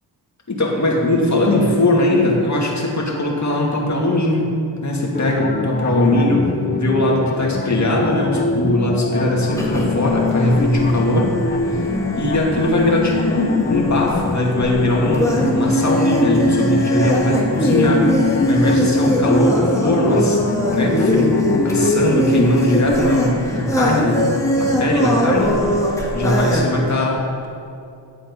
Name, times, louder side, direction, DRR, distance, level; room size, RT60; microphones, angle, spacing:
voice 1, 0.5-4.5 4.8-11.8 12.2-20.4 20.7-21.4 21.6-24.3 24.5-25.8 26.1-27.2, left 1 dB, 40° left, -2 dB, 2.5 m, -19 dB
sound 1, 5.1-21.9, left 5 dB, 20° left, 0.4 m, -25 dB
Carnatic varnam by Badrinarayanan in Kalyani raaga, 9.5-26.6, equal, 5° left, 1.8 m, -21 dB
11.0 x 7.6 x 5.5 m, 2.6 s
cardioid pair, 60°, 45 cm